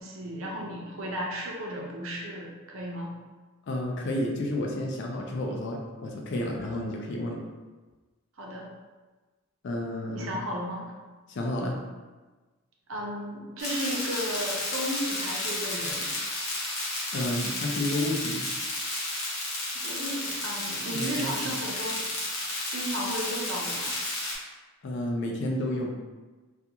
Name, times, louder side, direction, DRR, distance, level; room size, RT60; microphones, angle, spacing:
voice 1, 0.0-3.1 8.4-8.7 10.1-10.9 12.9-16.1 19.8-22.1 22.7-23.9, equal, 75° right, -1 dB, 0.6 m, -34 dB
voice 2, 3.7-7.5 9.6-10.4 11.3-11.8 17.1-18.4 20.9-21.3 24.8-26.0, left 1 dB, 55° left, 0 dB, 0.4 m, -31 dB
sound 1, 13.6-24.4, left 1 dB, 90° left, 0.8 m, -32 dB
2.4 x 2.3 x 2.8 m, 1.3 s
head